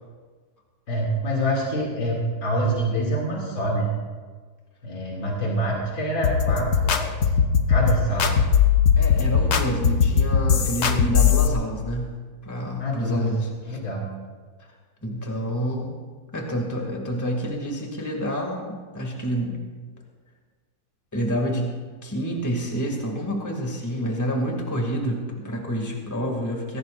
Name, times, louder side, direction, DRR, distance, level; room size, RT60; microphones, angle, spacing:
voice 1, 0.9-3.9 4.8-7.2 7.7-8.3 12.8-13.3 13.7-14.1, right 1 dB, 85° left, -4 dB, 3.4 m, -26 dB
sound 1, 6.2-11.5, left 7 dB, 60° left, 1.5 m, -19 dB
voice 2, 8.1-8.4 9.0-12.1 12.4-13.8 15.0-15.9 16.3-19.6 21.1-21.7 22.0-26.8, equal, 10° left, 0 dB, 2.2 m, -28 dB
22.5 x 17.5 x 2.6 m, 1.4 s
omnidirectional pair, 2.0 m